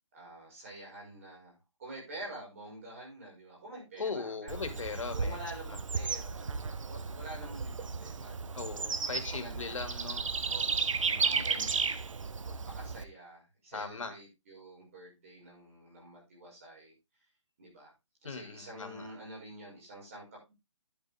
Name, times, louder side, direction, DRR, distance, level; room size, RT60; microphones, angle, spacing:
voice 1, 0.1-1.5 1.8-4.6 5.1-8.6 9.1-9.8 10.5-11.9 12.4-16.9 17.6-17.9 18.2-20.5, right 1 dB, 25° right, -3 dB, 5.5 m, -48 dB
voice 2, 4.0-5.4 5.7-5.8 8.5-11.2 13.7-14.1 18.2-19.1, left 4 dB, 90° left, 6 dB, 2.6 m, -39 dB
Bird / Insect, 4.5-13.0, right 5 dB, 85° right, 1.1 m, -34 dB
10.5 x 8.2 x 3.6 m, 0.25 s
hypercardioid pair, 180°, 16 cm